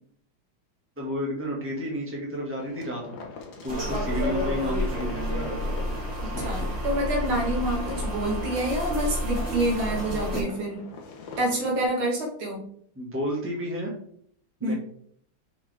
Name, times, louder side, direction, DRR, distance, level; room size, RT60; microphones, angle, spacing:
voice 1, 1.0-3.2 3.6-5.7 6.2-6.7 13.0-13.9 14.6-14.7, equal, 5° right, -3 dB, 1.7 m, -32 dB
sound 1, 2.6-11.8, left 4 dB, 55° left, 1.5 m, -43 dB
sound 2, 3.7-10.4, left 1 dB, 30° right, 3.5 m, -30 dB
voice 2, 6.2-10.8 11.4-12.6 14.6-14.7, right 1 dB, 75° right, -1 dB, 2.6 m, -27 dB
6.0 x 6.0 x 3.6 m, 0.64 s
omnidirectional pair, 2.3 m